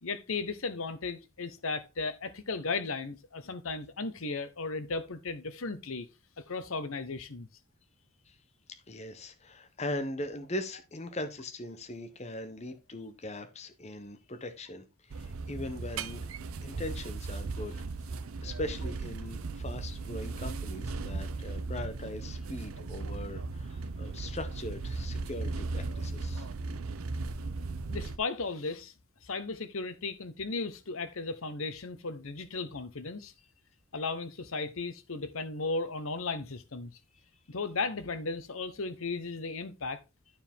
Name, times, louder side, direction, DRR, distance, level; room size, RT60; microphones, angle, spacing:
voice 1, 0.0-6.1 6.5-7.5 27.9-28.9 29.2-33.3 33.9-36.9 37.5-40.0, left 3 dB, 80° left, 1.0 m, -35 dB
voice 2, 8.9-16.3 16.6-17.7 18.4-26.5, left 1 dB, 30° left, 0.9 m, -40 dB
sound 1, 15.1-28.2, right 3 dB, 90° right, 0.6 m, -37 dB
11.5 x 4.7 x 3.5 m
head